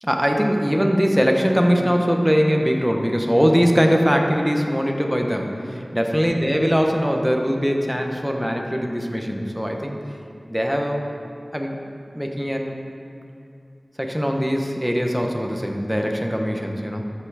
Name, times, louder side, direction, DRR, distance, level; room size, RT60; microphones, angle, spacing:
voice 1, 0.0-10.0 10.5-11.0 11.5-11.8 12.1-12.8 14.0-17.1, equal, 5° right, 2 dB, 1.0 m, -21 dB
13.5 x 5.7 x 4.9 m, 2.6 s
wide cardioid pair, 50°, 0 cm